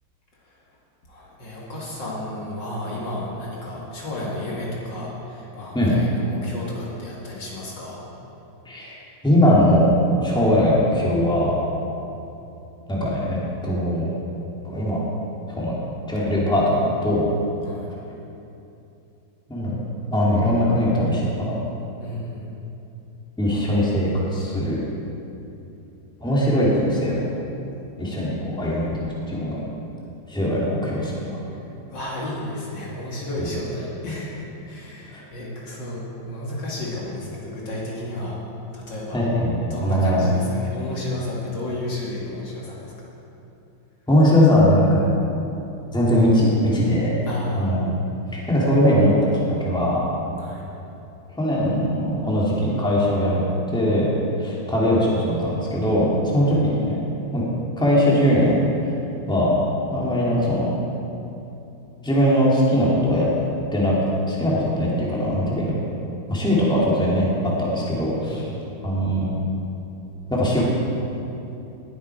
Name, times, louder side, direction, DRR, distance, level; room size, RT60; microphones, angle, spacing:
voice 1, 1.1-8.1 17.6-17.9 22.0-22.5 31.5-31.6 31.9-38.4 38.7-39.2 39.6-43.1 47.3-47.7 50.4-50.6 56.3-56.5 68.2-68.7, left 1 dB, 60° left, -5 dB, 2.6 m, -32 dB
voice 2, 9.2-9.9 10.2-11.6 12.9-14.1 14.6-15.0 15.5-15.8 16.1-17.2 19.5-19.8 20.1-21.6 23.4-24.8 26.2-27.2 28.0-29.0 29.3-29.6 30.3-31.2 35.1-35.2 39.1-40.3 44.1-45.0 45.9-47.1 47.5-47.9 48.3-50.0 51.4-53.4 53.7-54.1 54.4-57.0 57.3-57.4 57.8-58.6 59.3-59.5 59.9-60.7 62.0-63.3 63.7-63.9 64.3-65.7 66.3-67.3 67.6-68.4 68.8-69.3 70.3-70.6, equal, ahead, -6 dB, 2.4 m, -20 dB
19.5 x 8.2 x 4.8 m, 2.9 s
omnidirectional pair, 2.3 m